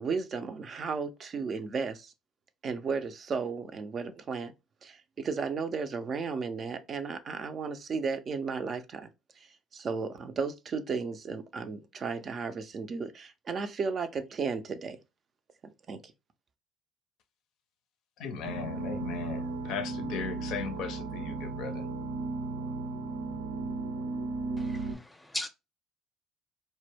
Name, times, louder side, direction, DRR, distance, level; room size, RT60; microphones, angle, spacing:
voice 1, 0.0-2.1 2.6-4.5 4.8-9.1 9.7-15.0 15.6-16.0, right 5 dB, 45° right, 0.4 m, -34 dB
voice 2, 18.2-21.8, left 6 dB, 70° left, 0.4 m, -37 dB
sound 1, 18.4-24.9, right 3 dB, 90° right, 0.6 m, -35 dB
voice 3, 24.6-25.5, left 1 dB, 10° left, 0.5 m, -38 dB
2.1 x 2.1 x 3.2 m
hypercardioid pair, 65°, 0 cm